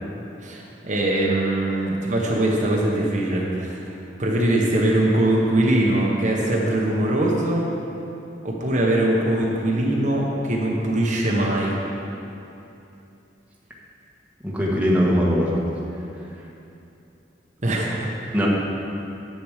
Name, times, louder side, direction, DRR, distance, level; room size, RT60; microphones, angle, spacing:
voice 1, 0.4-3.8 4.2-7.7 8.4-11.8 17.6-18.5, right 1 dB, 45° right, -3 dB, 1.2 m, -22 dB
voice 2, 14.4-15.6 18.3-18.5, equal, 10° right, -5 dB, 1.4 m, -20 dB
10.5 x 7.9 x 5.0 m, 2.8 s
head